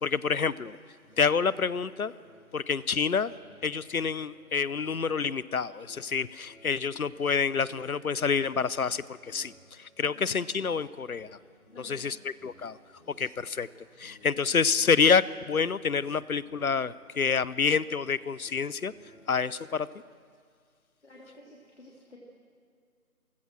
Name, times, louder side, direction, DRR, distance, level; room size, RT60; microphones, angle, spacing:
voice 1, 0.0-0.8 1.2-2.1 2.5-3.3 3.6-11.3 11.8-12.8 13.2-13.7 14.0-18.9 19.3-19.9, left 5 dB, 70° left, 19 dB, 0.8 m, -28 dB
sound 1, 1.0-20.1, equal, 5° right, 7.2 m, -58 dB
voice 2, 11.7-12.2 21.0-22.2, left 1 dB, 50° left, -2 dB, 3.3 m, -52 dB
29.0 x 16.0 x 6.2 m, 2.1 s
figure-of-eight pair, 165°, 44 cm